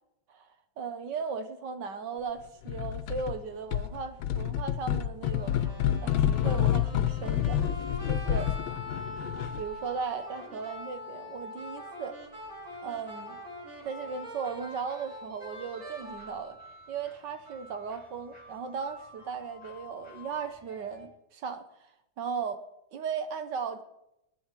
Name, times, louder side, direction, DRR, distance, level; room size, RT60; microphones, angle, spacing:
voice 1, 0.8-5.6 6.0-7.6 8.1-8.5 9.6-12.2 12.8-13.4 13.8-16.6 16.9-21.6 22.2-22.6 22.9-23.8, right 5 dB, 65° right, 1.5 m, -36 dB
sound 1, 2.7-3.4 3.7-9.7, left 10 dB, 90° left, 1.6 m, -29 dB
sound 2, 3.5-21.1, left 1 dB, 5° left, 6.0 m, -56 dB
sound 3, 5.3-16.3, left 1 dB, 40° right, 5.5 m, -43 dB
22.5 x 10.5 x 4.8 m
omnidirectional pair, 2.1 m